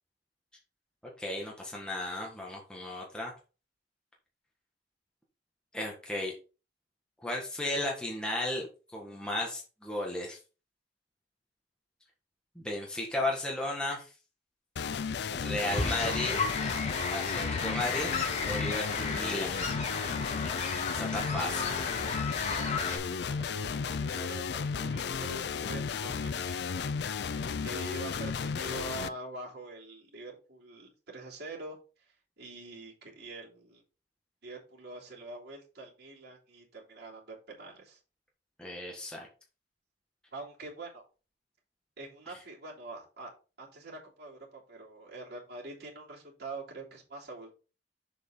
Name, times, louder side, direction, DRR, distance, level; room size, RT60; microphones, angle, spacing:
voice 1, 1.2-3.3 5.7-6.3 7.2-10.4 12.6-14.1 15.3-16.4 17.1-18.1 18.4-19.6 20.9-21.7 38.6-39.3, left 1 dB, 5° left, -2 dB, 1.6 m, -34 dB
sound 1, 14.8-29.1, left 6 dB, 65° left, 0.4 m, -34 dB
sound 2, 15.7-23.0, left 4 dB, 40° left, 1.9 m, -34 dB
voice 2, 22.7-26.8 27.6-31.8 32.4-33.8 34.4-38.0 40.3-41.0 42.0-43.3 43.6-47.5, right 3 dB, 60° right, -4 dB, 3.3 m, -45 dB
6.9 x 5.3 x 4.0 m, 0.33 s
head